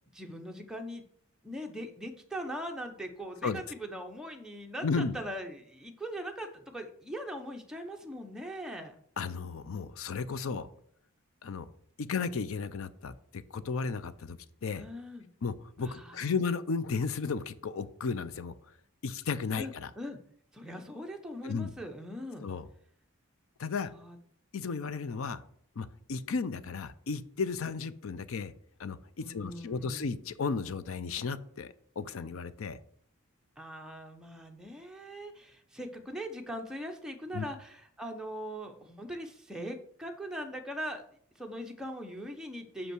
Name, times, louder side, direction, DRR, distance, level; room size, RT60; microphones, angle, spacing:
voice 1, 0.1-1.0 1.4-9.0 14.8-15.3 15.8-16.3 19.6-20.2 20.5-22.5 23.7-24.2 29.2-30.1 33.6-41.0 41.3-42.9, equal, 5° right, 2 dB, 0.7 m, -41 dB
voice 2, 4.8-5.2 9.2-10.7 11.4-11.7 12.0-14.8 15.4-18.5 19.0-19.9 21.4-21.7 22.4-22.7 23.6-23.9 24.5-25.4 25.8-28.5 28.8-32.8 37.3-37.5, left 5 dB, 65° left, 14 dB, 0.5 m, -34 dB
5.5 x 5.5 x 6.1 m, 0.64 s
head